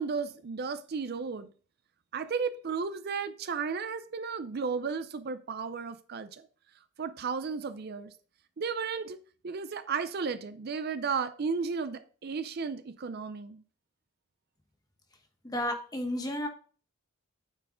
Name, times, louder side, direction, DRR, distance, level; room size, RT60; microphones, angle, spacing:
voice 1, 0.0-1.5 2.1-6.5 7.0-8.1 8.6-9.2 9.4-13.6, right 5 dB, 50° right, 0.5 m, -34 dB
voice 2, 15.4-16.5, left 1 dB, 20° left, 1.1 m, -32 dB
8.9 x 4.6 x 3.7 m
head